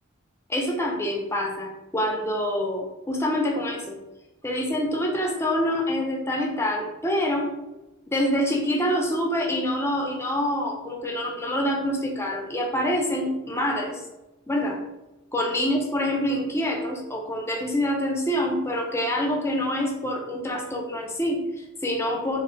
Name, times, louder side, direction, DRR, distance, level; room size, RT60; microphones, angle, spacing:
voice 1, 0.5-4.0 4.4-7.5 8.1-14.0 14.5-14.8 15.3-22.4, equal, 10° left, 0 dB, 0.5 m, -26 dB
4.0 x 2.0 x 4.2 m, 1.0 s
head